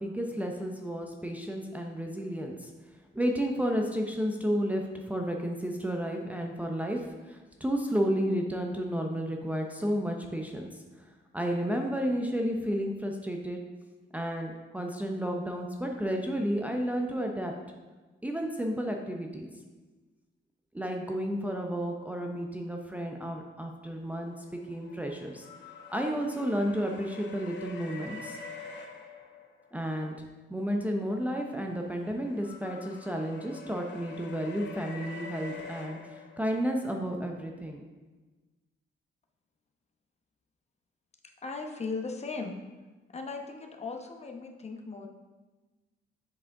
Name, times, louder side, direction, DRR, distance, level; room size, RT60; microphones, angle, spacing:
voice 1, 0.0-2.7 3.1-4.8 5.1-10.8 11.3-13.6 14.1-17.5 18.2-19.5 20.7-25.5 25.9-28.4 29.7-37.9, equal, 5° right, 1 dB, 0.6 m, -32 dB
sound 1, 24.3-29.9 31.3-36.6, left 3 dB, 60° left, 1.0 m, -46 dB
voice 2, 41.4-42.6 43.1-45.1, left 4 dB, 35° left, 3 dB, 0.9 m, -37 dB
7.3 x 4.8 x 3.6 m, 1.2 s
cardioid pair, 90°, 20 cm